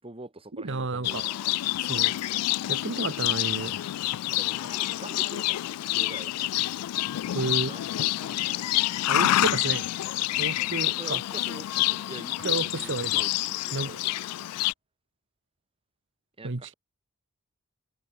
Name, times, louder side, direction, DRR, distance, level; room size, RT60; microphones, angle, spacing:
voice 1, 0.0-1.4 4.3-6.5 7.6-8.8 10.8-14.5 16.4-16.7, right 2 dB, 25° right, 2.3 m, -45 dB
voice 2, 0.6-1.2 1.7-2.4 2.7-3.9 7.3-7.7 9.1-9.9 10.4-11.2 12.4-13.1 13.7-14.0 16.4-16.7, right 3 dB, 55° right, 1.2 m, -32 dB
Livestock farm animals working animals, 1.0-14.7, left 16 dB, 85° left, 0.3 m, -28 dB
sound 1, 2.6-13.9, left 6 dB, 25° left, 7.4 m, -60 dB
head